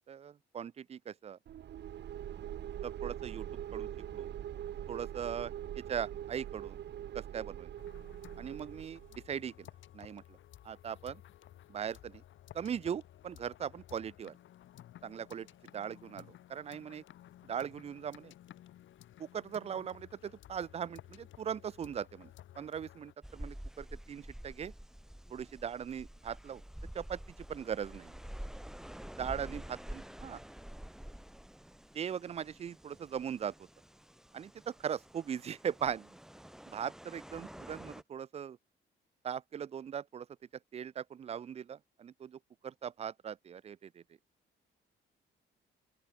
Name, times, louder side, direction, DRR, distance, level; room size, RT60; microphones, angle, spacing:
voice 1, 0.1-1.4 2.8-3.5 3.7-4.3 4.9-6.8 7.1-7.7 8.4-9.7 9.9-10.2 10.6-11.2 11.7-12.2 12.5-14.3 15.0-15.5 15.7-17.0 17.4-18.3 19.2-22.3 22.6-24.7 25.3-26.6 26.9-27.2 27.5-28.1 29.2-29.6 29.9-30.4 31.9-33.5 34.3-36.1 36.7-38.6 39.2-40.3 40.7-44.0, right 8 dB, 30° right, 0.4 m, -39 dB
sound 1, 1.5-9.2, right 11 dB, 60° right, 1.0 m, -43 dB
sound 2, 7.8-23.1, left 12 dB, 75° left, 1.9 m, -56 dB
sound 3, 23.2-38.0, equal, ahead, 0.8 m, -48 dB
open air
cardioid pair, 90°, 20 cm